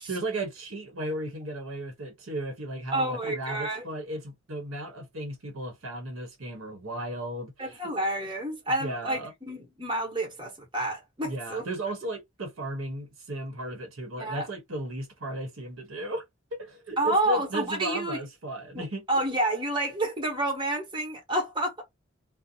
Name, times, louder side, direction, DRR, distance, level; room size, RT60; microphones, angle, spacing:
voice 1, 0.1-7.8 8.8-9.3 11.2-16.2 16.5-19.0, right 1 dB, 90° right, 1.0 m, -35 dB
voice 2, 2.9-3.8 7.6-11.6 14.2-14.5 17.0-18.2 18.7-21.8, right 1 dB, 25° right, 1.1 m, -29 dB
2.6 x 2.1 x 2.7 m
head